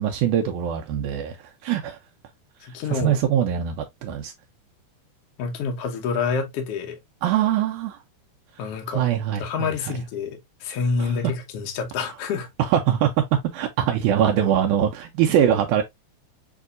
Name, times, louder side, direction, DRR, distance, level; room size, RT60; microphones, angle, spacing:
voice 1, 0.0-2.0 2.9-4.3 7.2-8.0 8.9-9.7 11.0-11.1 12.6-13.1 13.5-15.8, right 10 dB, 80° right, 2.0 m, -22 dB
voice 2, 2.6-3.2 5.4-7.0 8.6-9.1 9.4-12.5, left 5 dB, 60° left, 1.7 m, -28 dB
6.7 x 2.8 x 2.4 m
omnidirectional pair, 3.6 m